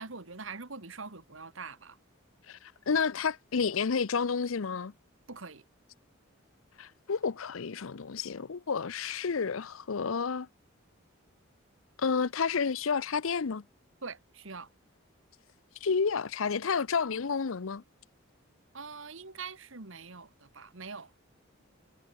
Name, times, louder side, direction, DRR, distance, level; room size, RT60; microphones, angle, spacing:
voice 1, 0.0-2.0 5.3-5.6 14.0-14.7 18.7-21.1, right 4 dB, 70° right, 1.9 m, -43 dB
voice 2, 2.5-4.9 6.8-10.5 12.0-13.6 15.8-17.8, left 5 dB, 75° left, 0.6 m, -30 dB
head